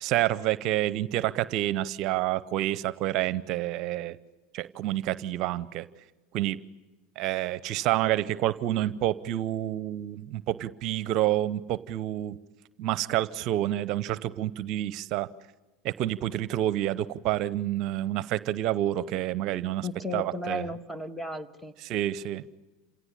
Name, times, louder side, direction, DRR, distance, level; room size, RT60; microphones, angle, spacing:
voice 1, 0.0-4.2 4.5-5.9 6.3-6.6 7.2-12.4 12.8-15.3 15.8-19.9 20.1-20.7 21.8-22.5, right 14 dB, 55° right, 17 dB, 0.8 m, -28 dB
voice 2, 19.8-21.7, left 2 dB, 5° left, 12 dB, 1.7 m, -35 dB
28.5 x 17.0 x 9.9 m, 1.2 s
hypercardioid pair, 95°, 0 cm